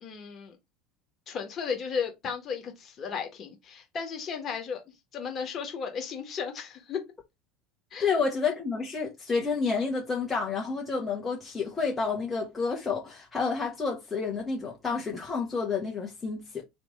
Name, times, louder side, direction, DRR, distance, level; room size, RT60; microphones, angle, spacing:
voice 1, 0.0-0.6 1.3-7.0 7.9-8.1, left 6 dB, 40° left, 1.7 m, -35 dB
voice 2, 8.0-16.6, left 5 dB, 25° left, 1.2 m, -29 dB
3.3 x 3.2 x 3.7 m
hypercardioid pair, 75°, 0 cm